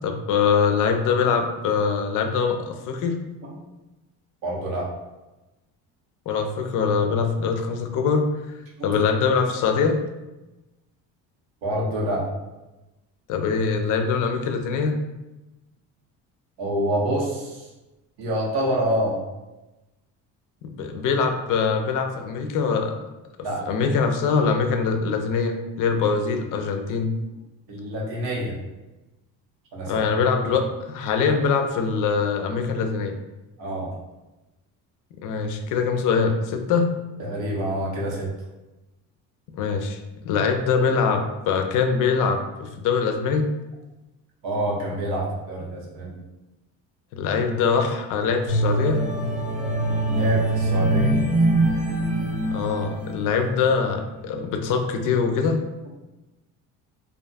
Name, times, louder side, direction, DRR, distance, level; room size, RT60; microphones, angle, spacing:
voice 1, 0.0-3.2 6.3-8.3 8.8-10.0 13.3-15.0 20.6-23.0 23.7-27.1 29.9-33.2 35.2-36.9 39.5-40.0 40.2-43.5 47.1-49.0 52.5-55.6, left 5 dB, 60° left, 5 dB, 0.5 m, -23 dB
voice 2, 4.4-4.9 8.8-8.9 11.6-12.3 16.6-17.7 18.2-19.2 23.4-23.6 26.3-26.4 27.7-28.6 29.7-30.1 33.6-33.9 37.2-38.3 44.4-46.2 50.1-51.1, right 1 dB, 80° right, -4 dB, 0.9 m, -26 dB
sound 1, 48.5-53.7 54.2-54.4, right 1 dB, 20° right, 0.4 m, -23 dB
2.5 x 2.2 x 2.5 m, 1.0 s
supercardioid pair, 90°, 36 cm